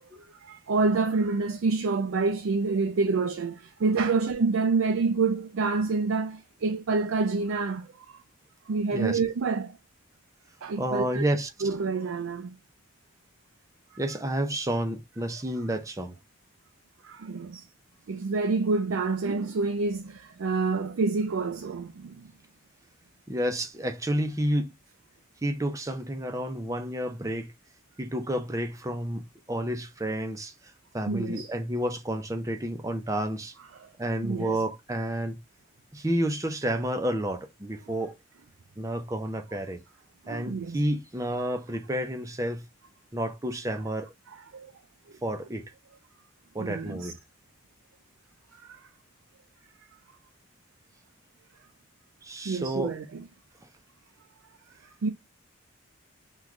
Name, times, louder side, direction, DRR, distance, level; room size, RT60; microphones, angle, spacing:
voice 1, 0.2-7.9 8.7-9.8 10.6-11.2 11.6-12.5 17.0-17.6 18.1-22.3 31.1-31.5 33.7-33.9 34.2-34.6 40.3-40.8 44.5-44.7 46.6-47.1 48.6-48.8 52.4-53.2 55.0-55.1, right 4 dB, 85° right, 0.4 m, -27 dB
voice 2, 10.8-11.7 14.0-16.2 23.3-24.7 25.4-27.5 28.0-33.5 34.0-35.4 35.9-38.1 38.8-39.8 40.3-42.6 43.1-44.1 45.2-45.7 46.5-47.2 52.2-52.9, right 1 dB, 15° right, 0.5 m, -30 dB
3.6 x 2.3 x 3.0 m
head